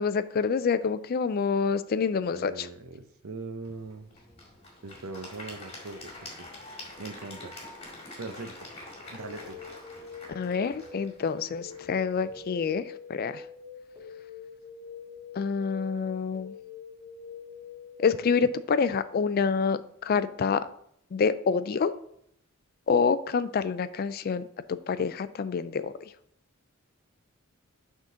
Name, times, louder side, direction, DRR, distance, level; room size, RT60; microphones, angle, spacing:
voice 1, 0.0-2.7 10.3-12.8 13.1-13.4 15.4-16.5 18.0-20.7 21.1-21.9 22.9-25.9, left 5 dB, 45° left, 14 dB, 0.3 m, -27 dB
voice 2, 2.3-4.1 4.8-6.5 7.0-7.5 8.2-8.7 9.1-9.6, right 3 dB, 80° right, 8 dB, 0.7 m, -41 dB
Applause / Crowd, 3.6-12.7, left 2 dB, 30° left, 2.0 m, -46 dB
sound 1, 9.2-18.7, left 5 dB, 15° right, 2.4 m, -45 dB
6.2 x 3.7 x 5.6 m, 0.69 s
head